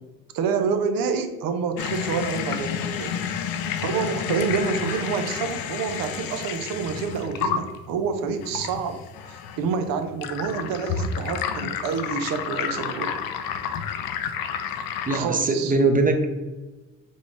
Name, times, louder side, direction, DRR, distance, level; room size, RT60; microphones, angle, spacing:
voice 1, 0.3-3.3 3.8-13.2 15.1-15.7, right 6 dB, 80° right, 8 dB, 0.7 m, -28 dB
sound 1, 1.8-15.2, left 7 dB, 85° left, 0.5 m, -30 dB
voice 2, 15.1-16.4, right 2 dB, 25° right, 5 dB, 0.6 m, -21 dB
5.3 x 2.6 x 3.3 m, 1.2 s
cardioid pair, 85°, 34 cm